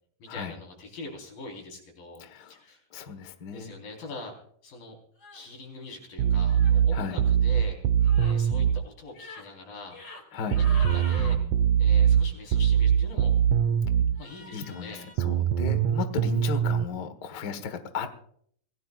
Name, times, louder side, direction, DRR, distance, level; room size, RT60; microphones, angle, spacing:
voice 1, 0.2-2.8 3.5-4.3 4.6-5.0 5.3-7.8 8.2-10.0 10.5-11.4 11.8-13.3 14.2-15.1, left 2 dB, 60° left, 1 dB, 5.9 m, -43 dB
voice 2, 2.2-2.6 2.9-3.7 6.9-7.2 10.3-10.6 14.5-18.1, left 5 dB, 85° left, 8 dB, 0.9 m, -35 dB
sound 1, 5.2-5.4 6.5-6.8 8.0-8.4 9.1-9.5 9.9-10.2 10.5-11.4 14.2-15.2, left 2 dB, 40° left, 3.7 m, -44 dB
sound 2, 6.2-8.8 10.5-14.1 15.2-16.8, right 8 dB, 70° right, 2.0 m, -22 dB
26.0 x 17.5 x 2.5 m, 0.63 s
omnidirectional pair, 4.5 m